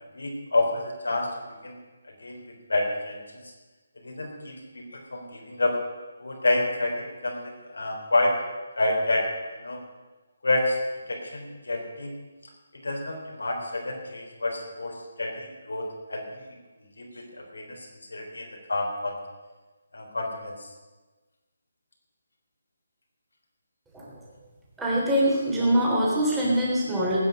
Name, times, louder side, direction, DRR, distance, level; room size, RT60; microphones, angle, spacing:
voice 1, 0.1-1.3 1.6-1.8 2.2-3.4 4.0-5.8 6.2-8.4 8.8-9.8 10.4-10.8 11.1-12.1 12.7-16.4 17.0-19.2 19.9-20.7, left 2 dB, 90° left, 2 dB, 3.8 m, -29 dB
voice 2, 24.8-27.2, equal, 5° right, -6 dB, 3.5 m, -23 dB
16.5 x 9.3 x 6.5 m, 1.2 s
hypercardioid pair, 160°, 0 cm